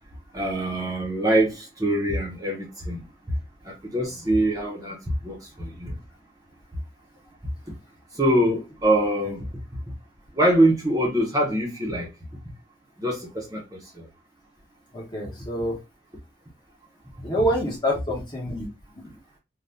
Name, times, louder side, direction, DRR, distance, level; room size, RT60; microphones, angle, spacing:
voice 1, 0.3-3.1 3.6-5.0 5.2-5.9 8.1-9.4 10.3-12.1 13.0-14.1, right 1 dB, 15° right, 0.8 m, -24 dB
voice 2, 14.9-15.8 17.2-18.7 18.9-19.1, equal, 20° left, 1.0 m, -27 dB
2.6 x 2.3 x 3.3 m
head